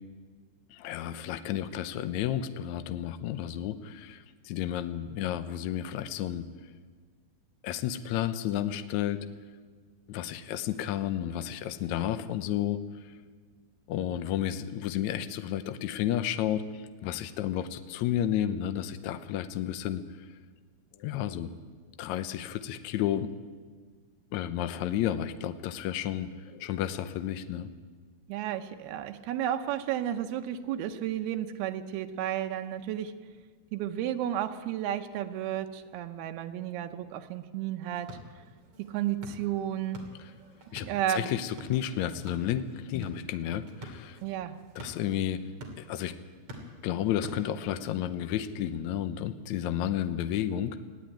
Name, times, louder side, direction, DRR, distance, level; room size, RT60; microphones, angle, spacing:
voice 1, 0.7-6.5 7.6-9.2 10.1-13.1 13.9-20.0 21.0-21.5 22.0-23.3 24.3-27.7 40.7-44.2 44.7-45.4 45.8-46.2 46.6-50.8, left 11 dB, 85° left, 11 dB, 1.6 m, -32 dB
voice 2, 28.3-33.2 33.7-38.2 38.8-40.0 40.8-41.3 44.2-44.6, right 11 dB, 85° right, 6 dB, 2.8 m, -32 dB
sound 1, 37.8-48.0, equal, 40° right, 3.4 m, -48 dB
20.5 x 14.5 x 9.1 m, 1.5 s
omnidirectional pair, 4.4 m